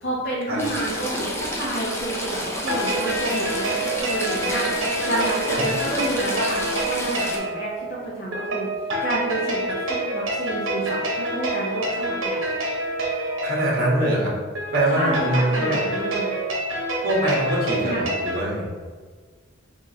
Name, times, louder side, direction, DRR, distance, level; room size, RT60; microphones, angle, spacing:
voice 1, 0.0-4.6 5.0-8.7 9.0-12.5 14.9-16.4 17.8-18.0, right 1 dB, 45° left, -8 dB, 1.0 m, -29 dB
Stream / Trickle dribble, 0.6-7.4, equal, 15° left, 0.6 m, -30 dB
sound 1, 2.5-18.4, right 1 dB, 70° right, 1.0 m, -27 dB
voice 2, 13.4-14.3 14.7-15.8 17.0-18.6, right 1 dB, 50° right, -3 dB, 1.2 m, -23 dB
6.0 x 2.9 x 2.9 m, 1.5 s
head